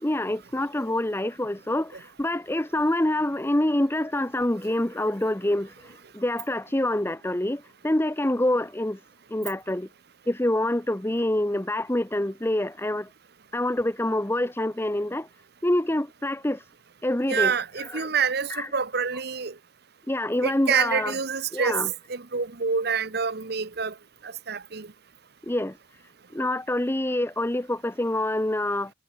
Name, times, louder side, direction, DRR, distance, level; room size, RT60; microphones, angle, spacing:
voice 1, 0.0-9.0 9.3-9.9 10.3-13.1 13.5-15.3 15.6-16.6 17.0-18.1 18.5-18.7 20.1-21.2 21.5-21.9 25.4-25.8 26.3-28.9, left 1 dB, 10° left, 0.7 m, -26 dB
voice 2, 17.3-19.5 20.4-21.8 22.1-23.9 24.2-24.9, right 6 dB, 50° right, 1.0 m, -27 dB
head